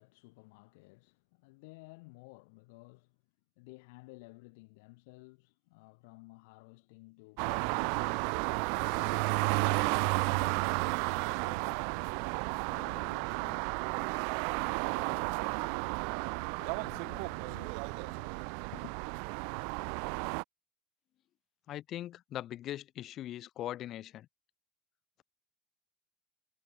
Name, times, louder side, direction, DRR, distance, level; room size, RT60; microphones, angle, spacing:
voice 1, 0.0-3.2 3.6-8.1 8.7-12.3 12.7-16.0 16.6-19.0, left 27 dB, 85° left, 1.7 m, -55 dB
sound 1, 7.4-20.4, right 40 dB or more, 70° right, 0.4 m, -33 dB
voice 2, 21.7-24.3, left 13 dB, 40° left, 1.3 m, -40 dB
cardioid pair, 160°, 0 cm